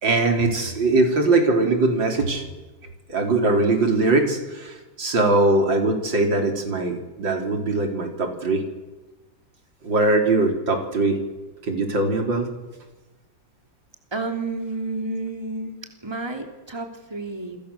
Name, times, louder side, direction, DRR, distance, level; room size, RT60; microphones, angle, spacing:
voice 1, 0.0-2.5 3.1-8.6 9.8-11.2 11.6-12.5, right 2 dB, 90° right, 3 dB, 4.3 m, -21 dB
voice 2, 14.1-17.6, right 2 dB, 15° right, 4 dB, 3.2 m, -31 dB
29.0 x 24.0 x 7.0 m, 1.1 s
omnidirectional pair, 2.0 m